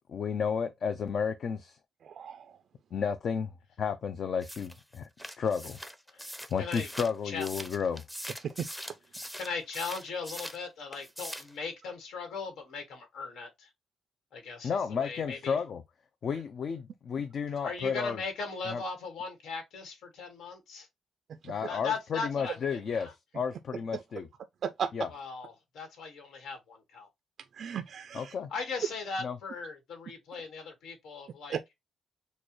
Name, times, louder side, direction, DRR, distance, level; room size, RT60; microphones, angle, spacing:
voice 1, 0.1-1.8 2.9-3.5 3.8-5.8 6.5-8.0 14.6-15.8 16.2-18.2 18.7-18.8 21.4-24.3 24.9-25.1 28.1-28.5 29.2-29.4, left 6 dB, 55° left, 0.5 m, -32 dB
voice 2, 2.0-2.6 8.6-8.7 21.4-21.5 24.6-24.9 27.5-28.3 31.5-31.7, right 8 dB, 60° right, 0.4 m, -35 dB
sound 1, 4.4-10.6 10.9-11.6, equal, 5° left, 0.6 m, -42 dB
voice 3, 9.4-13.7 14.3-15.6 17.6-20.9 21.7-23.1 25.1-27.1 28.5-31.6, left 4 dB, 90° left, 1.6 m, -38 dB
6.4 x 2.3 x 3.0 m
cardioid pair, 125°, 0 cm